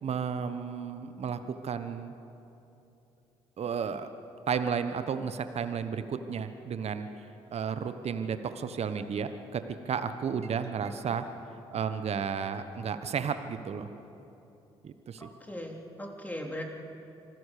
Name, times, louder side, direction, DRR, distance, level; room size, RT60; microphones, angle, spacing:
voice 1, 0.0-2.1 3.6-4.1 4.5-11.2 11.7-13.9 14.8-15.3, right 6 dB, 55° right, 10 dB, 1.2 m, -33 dB
voice 2, 15.2-16.6, equal, 10° left, 1 dB, 3.7 m, -39 dB
26.0 x 15.5 x 6.8 m, 2.9 s
hypercardioid pair, 50°, 13 cm